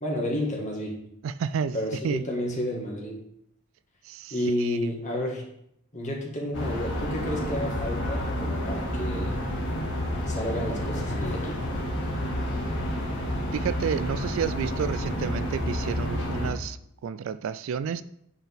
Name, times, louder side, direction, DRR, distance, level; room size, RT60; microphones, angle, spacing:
voice 1, 0.0-1.0 1.7-3.2 4.3-5.4 5.9-9.4 10.3-11.7, left 1 dB, 35° left, -1 dB, 1.8 m, -31 dB
voice 2, 1.2-1.8 2.0-2.2 4.1-4.3 4.6-4.8 13.5-16.8 17.0-18.0, right 7 dB, 65° right, 14 dB, 0.3 m, -30 dB
sound 1, 6.5-16.5, equal, 60° left, 2.2 m, -30 dB
9.0 x 4.5 x 3.6 m, 0.75 s
head